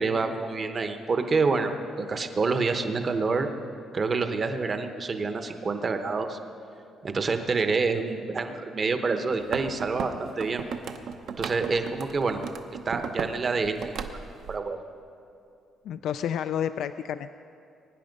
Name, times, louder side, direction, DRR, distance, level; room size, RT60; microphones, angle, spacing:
voice 1, 0.0-3.5 3.9-6.4 7.0-10.6 11.4-12.4 12.9-14.2 14.5-14.8, right 4 dB, 25° right, 7 dB, 0.9 m, -27 dB
sound 1, 9.4-13.4 13.6-14.6, right 7 dB, 55° right, 0.8 m, -36 dB
voice 2, 15.8-17.3, left 9 dB, 60° left, 10 dB, 0.3 m, -30 dB
22.5 x 9.9 x 5.3 m, 2.6 s
cardioid pair, 175°, 0 cm